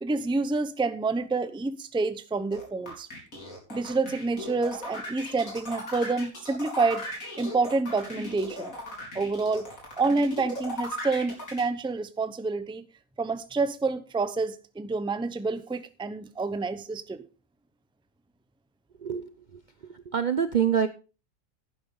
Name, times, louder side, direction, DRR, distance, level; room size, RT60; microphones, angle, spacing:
voice 1, 0.0-3.1 3.7-7.1 7.4-8.7 9.1-12.9 13.2-17.3, right 3 dB, 5° right, 0.5 m, -28 dB
sound 1, 2.5-11.6, left 1 dB, 75° left, 4.5 m, -37 dB
voice 2, 19.0-20.9, right 8 dB, 50° right, 0.6 m, -27 dB
11.0 x 10.5 x 3.9 m
omnidirectional pair, 1.5 m